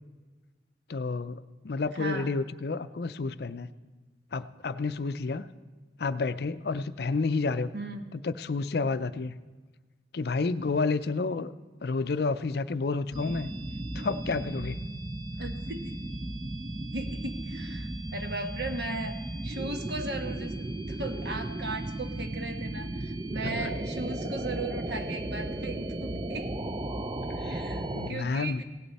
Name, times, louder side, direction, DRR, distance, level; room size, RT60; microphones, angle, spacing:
voice 1, 0.9-3.7 4.3-5.5 6.0-7.7 8.1-9.3 10.1-11.5 11.8-13.5 13.9-14.8 23.4-23.7 27.2-28.6, left 4 dB, 55° left, 13 dB, 0.5 m, -30 dB
voice 2, 1.9-2.3 7.7-8.1 15.4-15.8 16.9-19.2 19.4-26.5 27.5-28.6, right 2 dB, 60° right, 6 dB, 1.2 m, -37 dB
sound 1, 13.1-28.1, right 1 dB, 25° right, 0.4 m, -35 dB
17.0 x 11.5 x 4.1 m, 1.3 s
head